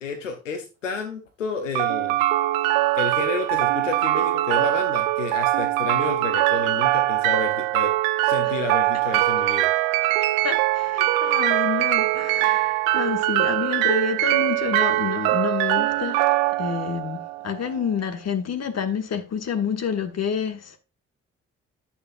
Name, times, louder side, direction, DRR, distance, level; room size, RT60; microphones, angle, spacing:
voice 1, 0.0-2.2 2.9-7.9 8.2-9.7, left 5 dB, 85° left, 0.8 m, -31 dB
sound 1, 1.7-17.8, right 16 dB, 65° right, 0.5 m, -22 dB
voice 2, 10.4-20.8, left 7 dB, 45° left, 1.4 m, -28 dB
10.0 x 7.0 x 2.5 m
figure-of-eight pair, 40°, 37 cm